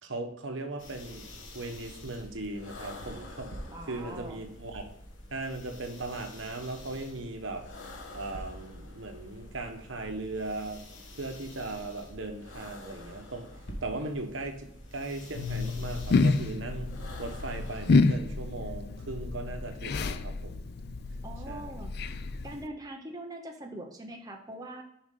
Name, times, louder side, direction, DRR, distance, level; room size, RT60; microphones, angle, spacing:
voice 1, 0.0-1.3 1.5-3.5 3.9-4.9 5.3-7.7 8.1-10.8 11.2-13.5 13.8-14.7 14.9-16.9 17.2-20.7 21.5-21.8, right 2 dB, 75° right, 5 dB, 1.1 m, -38 dB
sound 1, 0.8-17.9, left 1 dB, 70° left, 1.3 m, -46 dB
voice 2, 3.7-4.4 21.2-21.9 22.4-24.8, right 1 dB, 20° right, 2 dB, 0.7 m, -42 dB
sound 2, 15.3-22.7, left 3 dB, 55° left, 0.4 m, -29 dB
7.0 x 5.0 x 3.7 m, 0.75 s
head